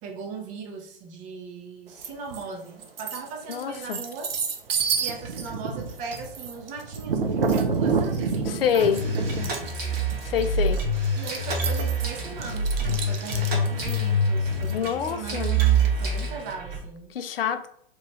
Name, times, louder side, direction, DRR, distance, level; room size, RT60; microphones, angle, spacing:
voice 1, 0.0-4.3 5.0-9.6 11.1-17.1, right 4 dB, 25° right, 0.6 m, -39 dB
sound 1, 2.0-2.4 2.8-16.1, right 5 dB, 80° right, 0.6 m, -29 dB
voice 2, 3.5-4.0 8.5-9.0 10.2-10.9 14.7-15.6 17.1-17.7, left 7 dB, 75° left, 0.5 m, -26 dB
sound 2, 8.8-16.8, right 1 dB, 40° right, 1.1 m, -26 dB
3.0 x 2.3 x 3.0 m
hypercardioid pair, 115°, 29 cm